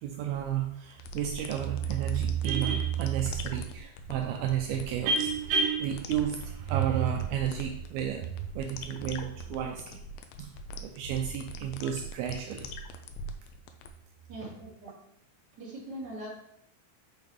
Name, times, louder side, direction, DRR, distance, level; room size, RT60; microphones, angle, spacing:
voice 1, 0.0-10.0 10.4-10.5 10.8-12.7, right 8 dB, 80° right, 2 dB, 2.4 m, -31 dB
sound 1, 0.9-13.9, left 1 dB, 80° left, 2.2 m, -42 dB
voice 2, 14.3-15.1 15.6-16.3, right 1 dB, 30° right, -7 dB, 2.8 m, -41 dB
6.9 x 5.3 x 3.2 m, 0.76 s
omnidirectional pair, 4.5 m